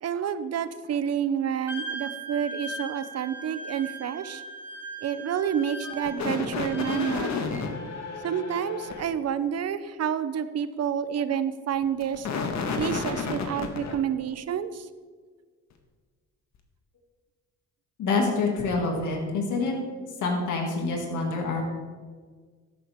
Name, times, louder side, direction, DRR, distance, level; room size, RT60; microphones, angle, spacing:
voice 1, 0.0-4.4 5.0-7.6 8.2-12.3 12.8-14.9, right 8 dB, 55° right, 13 dB, 0.8 m, -29 dB
Wind instrument woodwind instrument, 1.7-7.7, right 2 dB, 5° right, 1.7 m, -39 dB
sound 1, 5.8-9.0 11.8-14.0, left 5 dB, 65° left, 1.6 m, -31 dB
voice 2, 18.0-19.8 20.2-21.6, left 3 dB, 80° left, 1 dB, 2.5 m, -26 dB
13.0 x 11.0 x 3.7 m, 1.5 s
cardioid pair, 90°, 30 cm